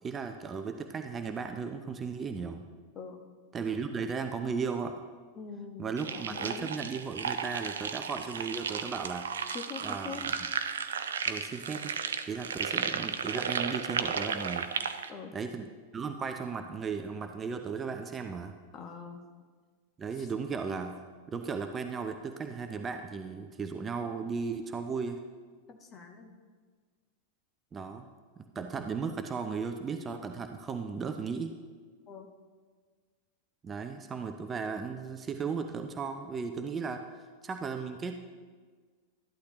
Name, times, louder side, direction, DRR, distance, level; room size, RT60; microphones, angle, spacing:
voice 1, 0.0-2.6 3.5-5.0 5.8-9.3 9.8-10.3 11.2-11.9 12.3-14.7 15.3-18.5 20.0-21.0 21.3-25.2 27.7-28.1 28.4-31.5 33.6-37.0 37.4-38.2, right 5 dB, 20° right, 6 dB, 0.6 m, -36 dB
voice 2, 5.4-6.7 9.5-10.3 15.1-15.3 18.7-19.2 20.2-20.3 25.7-26.3 32.1-32.3, left 5 dB, 30° left, 4 dB, 1.3 m, -43 dB
sound 1, 6.0-15.1, right 6 dB, 65° right, 0.5 m, -34 dB
12.5 x 11.5 x 3.0 m, 1.5 s
figure-of-eight pair, 90°, 0 cm